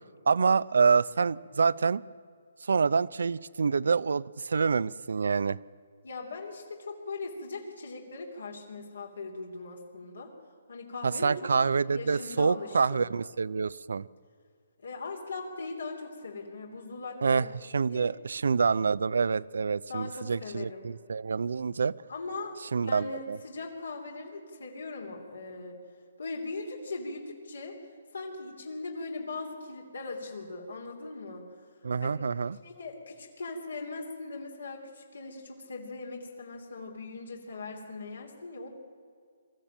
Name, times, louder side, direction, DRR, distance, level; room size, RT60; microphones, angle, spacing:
voice 1, 0.3-2.0 2.6-5.6 11.0-14.1 17.2-17.4 17.7-21.9 22.7-23.4 31.8-32.6, right 5 dB, 75° right, 20 dB, 0.5 m, -27 dB
voice 2, 6.0-10.3 10.7-13.0 14.8-17.5 17.8-18.1 19.9-20.9 22.1-25.8 26.2-27.8 28.1-31.4 32.0-32.1 32.6-38.7, left 3 dB, 85° left, 1 dB, 3.2 m, -40 dB
22.5 x 13.5 x 8.9 m, 2.1 s
hypercardioid pair, 155°, 0 cm